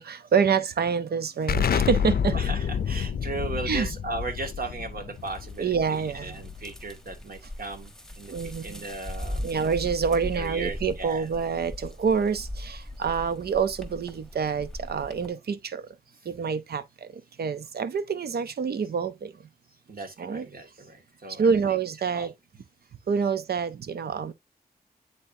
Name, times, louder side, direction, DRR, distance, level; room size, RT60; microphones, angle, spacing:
voice 1, 0.0-2.4 3.7-3.9 5.6-6.4 8.3-8.8 9.4-15.9 16.2-19.3 20.2-20.5 21.3-22.3 23.1-24.3, right 6 dB, 90° right, 0.7 m, -27 dB
Explosion, 1.5-6.9, left 7 dB, 75° left, 0.5 m, -28 dB
voice 2, 2.3-9.5 10.3-11.3 19.9-21.5 22.1-22.3, right 3 dB, 65° right, 2.1 m, -37 dB
sound 1, 5.1-15.3, left 1 dB, 5° left, 1.0 m, -39 dB
9.8 x 3.6 x 2.7 m
wide cardioid pair, 70°, 16 cm